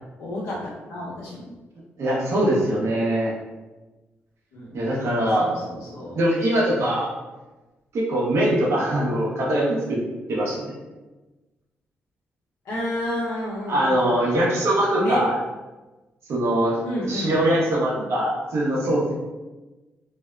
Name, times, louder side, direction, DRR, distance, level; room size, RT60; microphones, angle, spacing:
voice 1, 0.2-0.6 0.9-1.5 2.3-2.7 4.5-4.8 5.4-6.2 12.6-14.5 15.0-15.3 16.8-17.6, left 1 dB, 85° left, -6 dB, 0.8 m, -31 dB
voice 2, 2.0-3.3 4.7-5.5 6.1-7.1 7.9-10.0 10.3-10.7 13.7-15.3 16.3-16.8 17.1-19.1, right 1 dB, 70° right, -5 dB, 0.8 m, -22 dB
2.6 x 2.1 x 2.3 m, 1.1 s
supercardioid pair, 55°, 5 cm